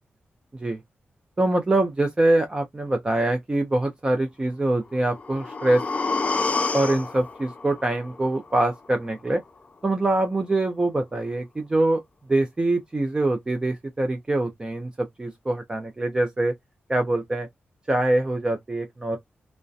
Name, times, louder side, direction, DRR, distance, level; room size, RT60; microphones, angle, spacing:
voice 1, 1.4-5.8 6.7-9.4 9.8-12.0 12.3-16.5 16.9-17.5 17.9-19.2, right 2 dB, 20° right, 0.5 m, -24 dB
sound 1, 4.9-8.9 9.3-9.4, left 3 dB, 35° left, 0.4 m, -29 dB
2.6 x 2.1 x 2.3 m
wide cardioid pair, 125°, 4 cm